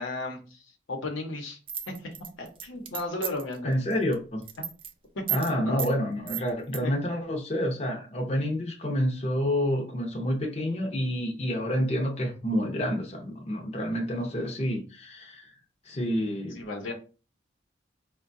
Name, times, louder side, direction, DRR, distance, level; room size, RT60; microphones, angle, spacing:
voice 1, 0.0-1.6 1.9-3.7 5.1-5.8 6.8-6.9 16.5-16.9, left 2 dB, 85° left, 2 dB, 0.8 m, -35 dB
sound 1, 1.7-3.5 3.9-4.1 4.4-4.9 5.3-5.5 5.8-5.9 6.3-6.8, right 10 dB, 25° right, 0.3 m, -33 dB
voice 2, 3.6-4.4 5.3-15.5 15.9-16.6, equal, 35° left, 1 dB, 0.6 m, -28 dB
4.5 x 2.2 x 2.6 m, 0.35 s
head